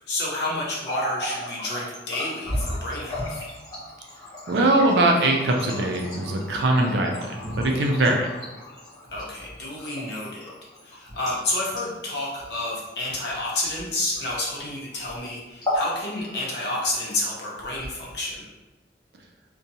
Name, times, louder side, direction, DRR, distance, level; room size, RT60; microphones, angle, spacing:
voice 1, 0.1-3.5 9.1-10.5 10.8-18.5, left 2 dB, 70° left, -4 dB, 0.7 m, -30 dB
Water tap faucet, 0.7-14.7 15.0-15.2 15.5-15.9 16.3-16.9 17.6-18.3, left 1 dB, 20° left, 0.8 m, -35 dB
voice 2, 4.5-8.3, right 2 dB, 75° right, 1 dB, 0.4 m, -21 dB
2.7 x 2.2 x 2.7 m, 1.1 s
head